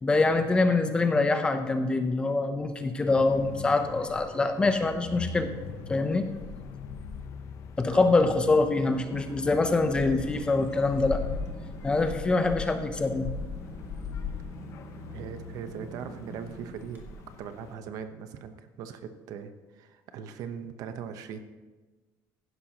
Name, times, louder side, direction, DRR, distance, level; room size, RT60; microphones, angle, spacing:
voice 1, 0.0-5.5 5.9-6.3 7.8-11.2 11.8-13.3, left 3 dB, 15° left, 7 dB, 0.6 m, -25 dB
sound 1, 3.1-17.7, left 5 dB, 50° left, 0.8 m, -40 dB
voice 2, 7.9-8.4 15.1-17.0 17.4-21.4, right 7 dB, 60° right, 9 dB, 0.9 m, -40 dB
sound 2, 8.2-17.4, right 3 dB, 30° right, 1.6 m, -46 dB
15.5 x 11.0 x 2.9 m, 1.2 s
cardioid pair, 170°, 7 cm